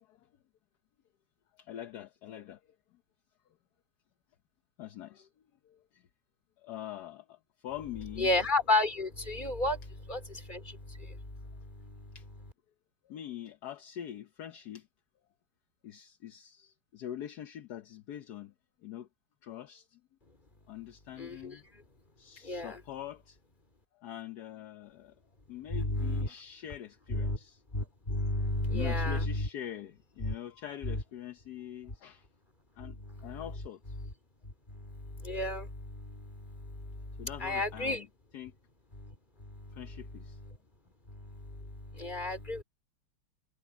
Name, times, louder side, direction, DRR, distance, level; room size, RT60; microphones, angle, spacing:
voice 1, 1.6-2.6 4.8-5.3 6.6-7.4 7.6-8.3 12.1-12.2 13.1-14.9 15.8-18.5 18.8-19.1 19.4-20.0 20.7-21.6 22.2-23.4 24.0-25.1 25.5-27.6 28.7-32.2 32.8-33.0 33.2-33.8 37.2-38.0 38.3-38.5 39.8-40.4, left 11 dB, 60° left, 1.1 m, -44 dB
voice 2, 8.2-12.5 21.1-21.8 22.4-22.8 25.7-26.3 27.1-27.4 27.7-29.5 30.2-30.4 30.8-31.0 31.9-32.0 32.8-34.1 34.4-38.0 38.9-40.6 41.1-42.6, left 2 dB, 20° left, 3.4 m, -34 dB
omnidirectional pair, 2.4 m